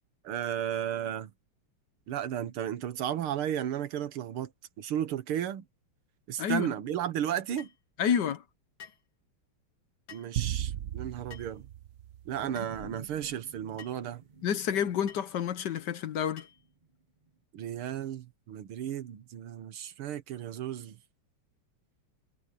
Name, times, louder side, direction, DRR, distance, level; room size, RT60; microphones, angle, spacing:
voice 1, 0.2-1.3 2.1-4.5 4.8-5.6 6.3-7.7 10.1-11.7 12.3-14.2 17.5-21.0, right 10 dB, 85° right, 2.1 m, -34 dB
voice 2, 6.4-6.7 8.0-8.4 14.4-16.4, left 8 dB, 60° left, 1.4 m, -29 dB
sound 1, 7.6-7.8 8.8-9.1 10.1-10.3 11.3-11.6 12.5-12.7 13.8-14.0 15.1-15.3 16.4-16.7, left 7 dB, 75° left, 3.6 m, -50 dB
sound 2, 10.4-12.8, right 11 dB, 70° right, 0.7 m, -36 dB
sound 3, 12.4-16.9 17.3-17.4, right 3 dB, 25° right, 1.0 m, -49 dB
omnidirectional pair, 2.3 m